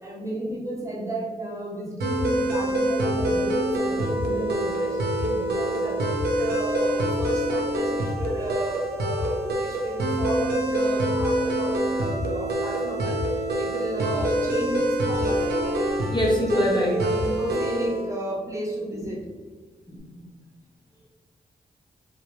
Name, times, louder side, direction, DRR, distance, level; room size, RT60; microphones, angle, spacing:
voice 1, 0.0-15.5 16.3-16.6 16.9-19.2, right 1 dB, 20° right, -5 dB, 1.3 m, -33 dB
sound 1, 2.0-18.0, right 1 dB, 85° right, 0.6 m, -25 dB
voice 2, 16.1-17.0 19.9-20.3, left 1 dB, 30° left, -3 dB, 0.8 m, -24 dB
3.6 x 2.4 x 3.2 m, 1.4 s
cardioid pair, 55°, 16 cm